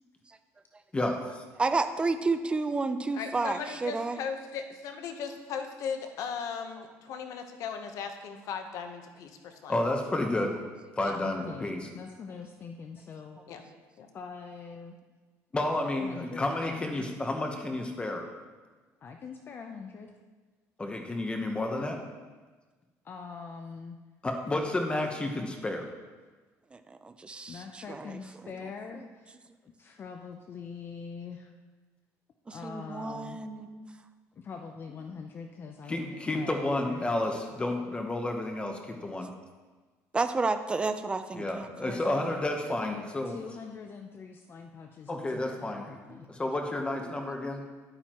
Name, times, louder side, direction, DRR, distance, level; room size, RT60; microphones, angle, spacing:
voice 1, 0.9-1.4 9.7-10.6 11.0-11.9 15.5-18.2 20.8-22.0 24.2-25.9 35.9-39.3 41.3-43.4 45.1-45.9 46.3-47.6, left 1 dB, 15° left, 3 dB, 1.0 m, -31 dB
voice 2, 1.6-4.2 26.7-28.2 28.9-29.0 32.5-33.9 40.1-42.0, right 3 dB, 15° right, 9 dB, 0.5 m, -31 dB
voice 3, 3.1-9.7 11.0-11.2 13.5-13.6 14.0-14.1, left 6 dB, 65° left, 6 dB, 1.0 m, -37 dB
voice 4, 11.2-13.4 14.1-14.9 16.0-17.1 19.0-20.1 23.0-24.0 27.5-29.4 29.6-31.5 32.5-33.4 34.4-37.1 41.8-42.4 42.8-46.3, left 5 dB, 35° left, 4 dB, 0.6 m, -43 dB
11.0 x 8.8 x 3.0 m, 1.3 s
cardioid pair, 130°, 6 cm